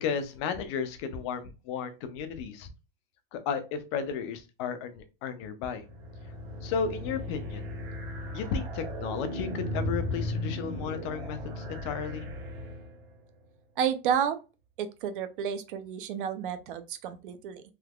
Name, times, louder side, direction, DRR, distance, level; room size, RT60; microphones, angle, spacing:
voice 1, 0.0-2.7 3.3-5.8 6.6-7.7 8.3-12.3, left 6 dB, 30° left, 0.4 m, -34 dB
sound 1, 5.8-13.2, left 1 dB, 25° right, 0.7 m, -36 dB
voice 2, 13.8-14.4 14.8-17.6, right 8 dB, 60° right, 0.6 m, -31 dB
3.5 x 2.8 x 2.3 m
supercardioid pair, 170°, 29 cm